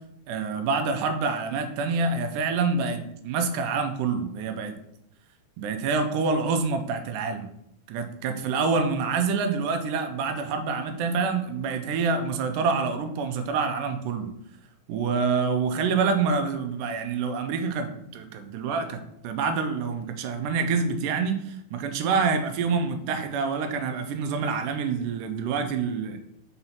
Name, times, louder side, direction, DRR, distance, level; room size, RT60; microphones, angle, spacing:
voice 1, 0.3-4.8 5.6-7.5 7.9-14.3 14.9-26.2, right 5 dB, 85° right, 7 dB, 2.2 m, -27 dB
5.6 x 3.9 x 4.4 m, 0.75 s
omnidirectional pair, 3.7 m